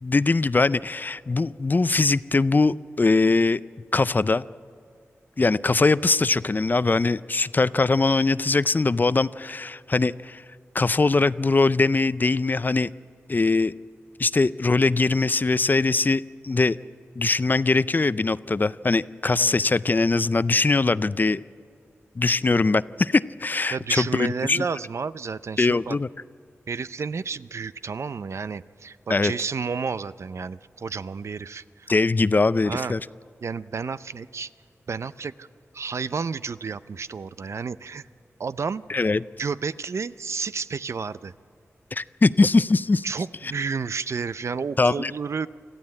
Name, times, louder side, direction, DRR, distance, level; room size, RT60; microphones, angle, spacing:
voice 1, 0.0-3.6 3.9-4.4 5.4-10.4 10.7-12.9 13.3-13.7 14.2-16.8 17.2-21.4 22.2-24.6 25.6-26.1 29.1-29.3 31.9-33.0 38.9-39.2 41.9-43.1 44.8-45.1, left 3 dB, 35° left, 17 dB, 0.4 m, -21 dB
voice 2, 23.7-26.0 26.7-32.0 32.6-32.9 33.4-34.5 34.9-35.5 35.7-38.0 38.4-38.8 39.4-41.3 43.0-45.5, right 5 dB, 65° right, 15 dB, 0.5 m, -31 dB
25.5 x 14.0 x 8.8 m, 2.3 s
cardioid pair, 60°, 5 cm